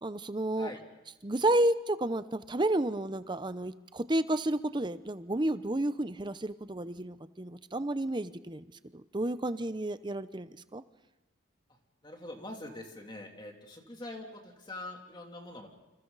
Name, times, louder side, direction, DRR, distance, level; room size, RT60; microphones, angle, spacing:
voice 1, 0.0-0.7 1.2-8.6 8.9-10.8, right 1 dB, 25° right, 13 dB, 0.7 m, -31 dB
voice 2, 12.0-15.7, left 1 dB, 25° left, 1 dB, 3.1 m, -44 dB
29.0 x 27.0 x 4.1 m, 1.1 s
head